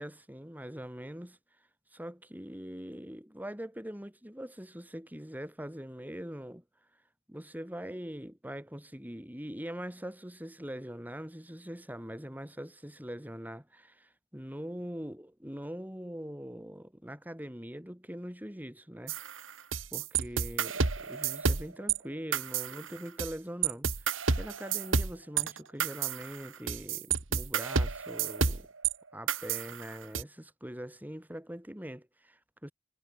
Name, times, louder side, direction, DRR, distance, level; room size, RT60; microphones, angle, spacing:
voice 1, 0.0-1.4 1.9-6.6 7.3-19.4 19.9-28.7 29.1-32.7, equal, 10° right, 3.5 m, -42 dB
sound 1, 19.1-22.0 22.3-23.3 23.6-28.9 29.3-30.2, right 5 dB, 90° right, 1.8 m, -30 dB
head